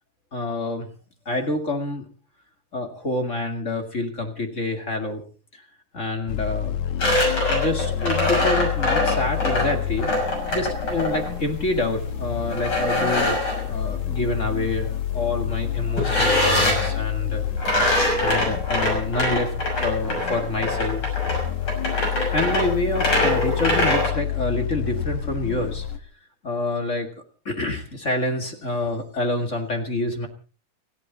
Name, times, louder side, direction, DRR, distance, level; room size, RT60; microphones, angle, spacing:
voice 1, 0.3-0.9 1.3-2.1 2.7-5.2 5.9-6.8 7.5-10.1 10.5-13.4 13.6-17.4 17.9-19.5 19.8-21.0 22.3-25.9 26.4-27.1 27.5-30.3, left 2 dB, 30° left, 5 dB, 2.0 m, -27 dB
sound 1, 6.3-26.0, left 9 dB, 70° left, 2.6 m, -28 dB
sound 2, 7.0-11.3 12.5-13.6 16.0-16.9 17.6-24.1, left 1 dB, 45° left, 7.3 m, -23 dB
30.0 x 10.0 x 4.1 m, 0.38 s
omnidirectional pair, 3.4 m